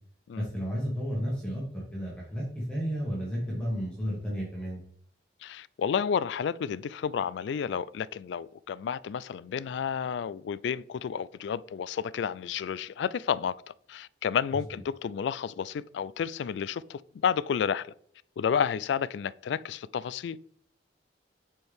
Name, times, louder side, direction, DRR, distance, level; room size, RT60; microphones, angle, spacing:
voice 1, 0.4-4.8, equal, 5° left, 1.6 m, -32 dB
voice 2, 5.4-17.9 18.4-20.4, left 7 dB, 75° left, 0.3 m, -31 dB
7.6 x 4.5 x 3.5 m
head